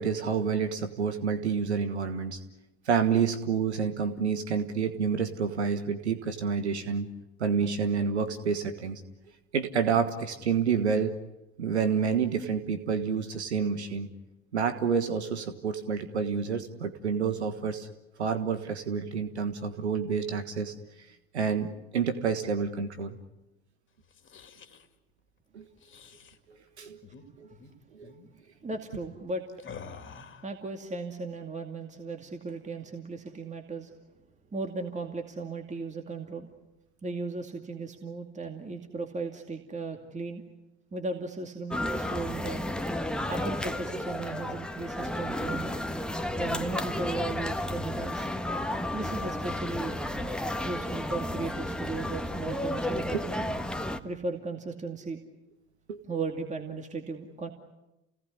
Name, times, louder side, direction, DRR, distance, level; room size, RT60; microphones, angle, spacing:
voice 1, 0.0-2.4 2.9-7.1 7.4-9.0 9.5-11.2 11.6-14.1 14.5-17.9 18.2-20.7 21.3-23.2 25.5-25.7 26.5-27.0 27.4-27.5 27.9-28.1 53.1-53.2 55.9-56.0, right 6 dB, 90° right, 9 dB, 1.5 m, -29 dB
sound 1, 24.0-24.9 25.8-26.4 27.0-27.2 27.5-27.7 28.0-28.3 29.6-30.5, left 6 dB, 35° left, 2.8 m, -47 dB
voice 2, 28.6-29.4 30.4-33.9 34.5-36.5 37.0-40.4 40.9-42.7 43.3-45.7 46.4-48.3 48.9-50.0 50.6-53.5 54.0-55.2 56.1-57.5, right 3 dB, 20° right, 4 dB, 2.5 m, -36 dB
sound 2, 41.7-54.0, left 1 dB, 5° left, 1.6 m, -32 dB
29.0 x 18.5 x 9.7 m, 0.98 s
hypercardioid pair, 65°, 33 cm